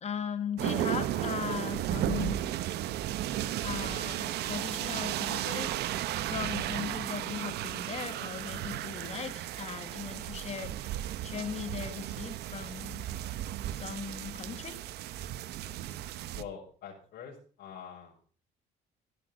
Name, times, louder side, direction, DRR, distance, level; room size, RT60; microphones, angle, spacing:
voice 1, 0.0-2.6 3.6-5.7 6.3-13.0 13.7-14.8, left 7 dB, 40° left, 10 dB, 2.0 m, -38 dB
sound 1, 0.6-16.4, right 13 dB, 75° right, 0.9 m, -34 dB
voice 2, 16.3-18.2, left 7 dB, 65° left, -6 dB, 5.8 m, -45 dB
15.0 x 11.0 x 5.3 m, 0.43 s
cardioid pair, 110°, 17 cm